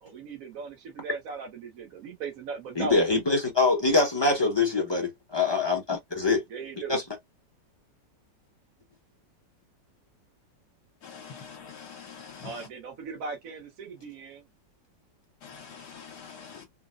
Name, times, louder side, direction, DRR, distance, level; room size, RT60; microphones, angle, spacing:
voice 1, 0.0-3.1 6.5-6.9 12.4-14.4, right 4 dB, 60° right, 1.0 m, -38 dB
voice 2, 2.8-6.4 6.9-7.0, left 3 dB, 25° left, 0.6 m, -24 dB
voice 3, 11.0-12.7 15.4-16.7, left 6 dB, 70° left, 1.3 m, -45 dB
3.9 x 2.1 x 2.4 m
omnidirectional pair, 1.9 m